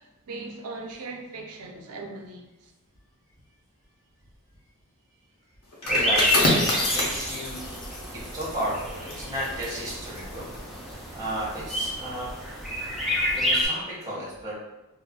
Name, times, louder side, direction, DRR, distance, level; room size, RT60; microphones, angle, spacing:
voice 1, 0.0-2.5, right 3 dB, 75° right, 2 dB, 0.5 m, -39 dB
sound 1, 5.7-11.2 11.6-11.8, left 1 dB, 90° left, 0.8 m, -29 dB
sound 2, 5.8-13.7, equal, ahead, 0.4 m, -29 dB
voice 2, 5.9-7.6 8.1-10.4 11.1-12.3 13.3-14.5, right 1 dB, 15° right, -7 dB, 0.8 m, -33 dB
2.4 x 2.0 x 3.5 m, 0.99 s
head